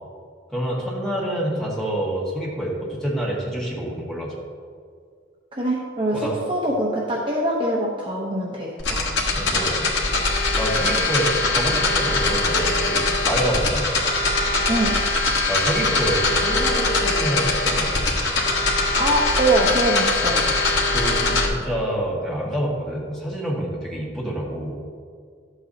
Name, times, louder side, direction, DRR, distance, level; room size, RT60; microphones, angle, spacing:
voice 1, 0.5-4.3 6.1-6.4 9.3-9.9 10.5-13.9 15.5-18.0 20.4-20.5 20.9-24.8, right 1 dB, ahead, -5 dB, 1.7 m, -27 dB
voice 2, 5.5-9.0 14.7-15.0 19.0-20.5, right 1 dB, 25° right, -3 dB, 0.9 m, -23 dB
sound 1, 8.8-21.5, left 2 dB, 65° left, 1.5 m, -22 dB
12.0 x 8.1 x 2.8 m, 2.1 s
head